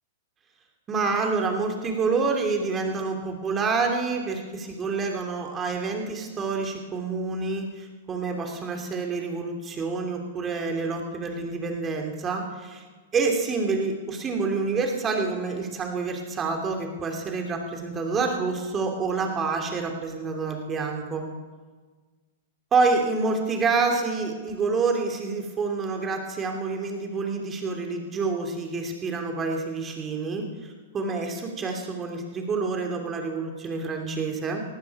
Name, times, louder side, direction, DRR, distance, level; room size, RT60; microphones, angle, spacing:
voice 1, 0.9-12.8 13.1-21.2 22.7-34.6, right 4 dB, 25° right, 3 dB, 2.8 m, -27 dB
18.5 x 14.5 x 4.8 m, 1.4 s
hypercardioid pair, 115°, 0 cm